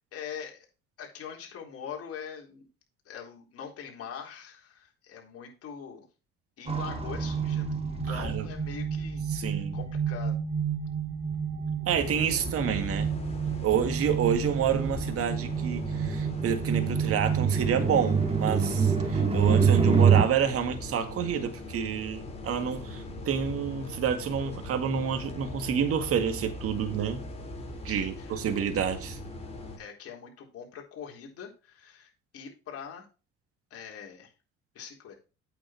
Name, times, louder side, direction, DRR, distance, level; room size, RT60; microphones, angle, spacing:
voice 1, 0.1-0.7 1.0-2.7 3.1-6.0 6.6-10.4 27.9-28.4 29.8-33.1 33.7-34.3 34.7-35.2, left 7 dB, 55° left, 3.9 m, -43 dB
sound 1, 6.7-20.2, right 6 dB, 20° right, 2.6 m, -27 dB
voice 2, 8.1-8.5 9.3-9.8 11.9-13.1 13.6-27.3 27.8-29.2, right 8 dB, 50° right, 1.9 m, -29 dB
sound 2, 11.9-29.8, left 1 dB, 20° left, 4.1 m, -40 dB
8.6 x 7.2 x 4.5 m
supercardioid pair, 85°, 29 cm